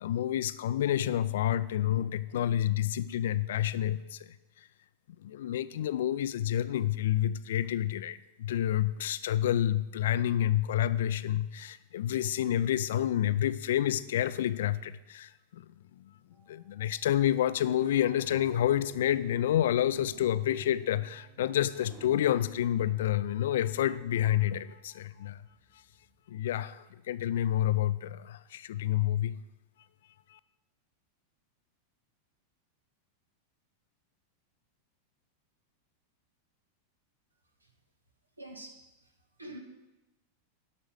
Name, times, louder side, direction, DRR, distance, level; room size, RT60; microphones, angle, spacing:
voice 1, 0.0-4.3 5.2-15.7 16.0-16.1 16.5-25.4 26.3-29.4 30.3-30.4, left 11 dB, 60° left, 16 dB, 0.4 m, -29 dB
sound 1, 16.3-16.8 17.5-26.2, right 2 dB, 30° right, 2.2 m, -54 dB
voice 2, 38.4-39.6, right 1 dB, 80° right, 4 dB, 1.5 m, -47 dB
11.0 x 6.8 x 6.4 m, 1.0 s
figure-of-eight pair, 90°, 0 cm